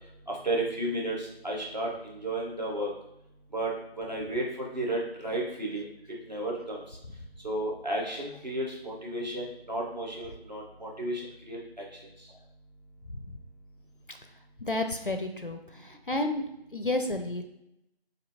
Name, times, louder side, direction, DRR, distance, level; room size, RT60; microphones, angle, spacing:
voice 1, 0.3-1.9 2.2-2.9 3.5-3.7 4.0-5.8 6.3-6.8 7.4-11.2 11.5-11.6, right 1 dB, 45° right, -3 dB, 1.0 m, -32 dB
voice 2, 14.7-16.4 16.7-17.4, left 2 dB, 55° left, 6 dB, 0.4 m, -31 dB
5.3 x 2.6 x 2.8 m, 0.80 s
figure-of-eight pair, 175°, 32 cm